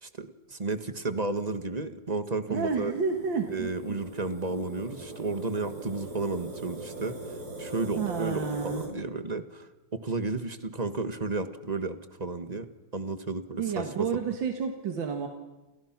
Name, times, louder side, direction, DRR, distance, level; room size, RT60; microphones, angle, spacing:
voice 1, 0.0-2.9 3.5-14.1, right 3 dB, 25° right, 10 dB, 1.3 m, -33 dB
sound 1, 2.5-8.9, right 1 dB, 50° right, 5.3 m, -41 dB
voice 2, 2.5-3.7 8.0-8.8 13.6-15.3, right 5 dB, 75° right, 4 dB, 2.4 m, -30 dB
29.5 x 28.5 x 6.0 m, 1.1 s
omnidirectional pair, 2.1 m